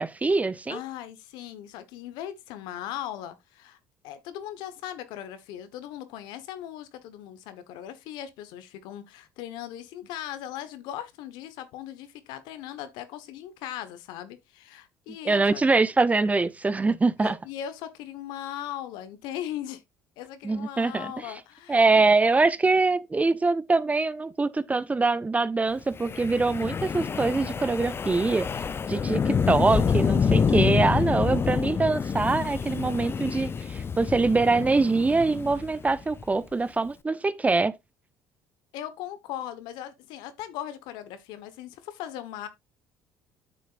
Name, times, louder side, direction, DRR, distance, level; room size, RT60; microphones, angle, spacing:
voice 1, 0.0-0.8 15.2-17.4 20.4-21.1 21.7-37.7, right 3 dB, 20° right, 0.6 m, -24 dB
voice 2, 0.7-3.8 4.0-15.6 17.2-19.8 20.2-22.0 24.7-24.8 38.7-42.5, left 11 dB, 75° left, 1.2 m, -38 dB
Wind, 26.0-36.2, left 6 dB, 30° left, 0.6 m, -27 dB
9.4 x 6.5 x 2.5 m
supercardioid pair, 75°, 8 cm